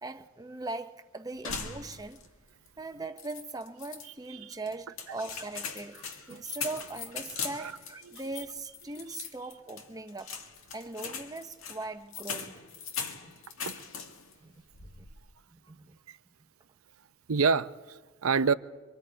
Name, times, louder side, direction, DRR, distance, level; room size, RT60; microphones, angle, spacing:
voice 1, 0.0-2.2 2.8-10.3 10.7-12.6 14.4-14.9 15.5-16.0, right 2 dB, 15° right, 0.8 m, -40 dB
sound 1, 1.4-2.4 2.7-2.8 3.2-4.1 4.7-14.3 14.7-15.2, left 6 dB, 75° left, 1.9 m, -40 dB
voice 2, 17.3-18.5, right 5 dB, 80° right, 0.7 m, -27 dB
26.0 x 24.5 x 4.6 m
head